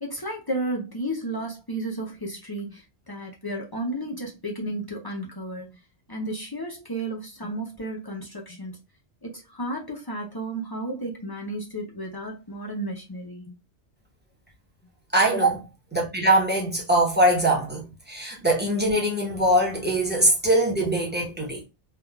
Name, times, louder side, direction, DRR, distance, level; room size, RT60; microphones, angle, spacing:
voice 1, 0.0-5.7 6.1-8.8 9.2-13.6, right 1 dB, 25° left, 0.6 m, -33 dB
voice 2, 15.1-21.6, right 1 dB, 10° right, 0.8 m, -22 dB
3.5 x 2.4 x 2.2 m
omnidirectional pair, 1.2 m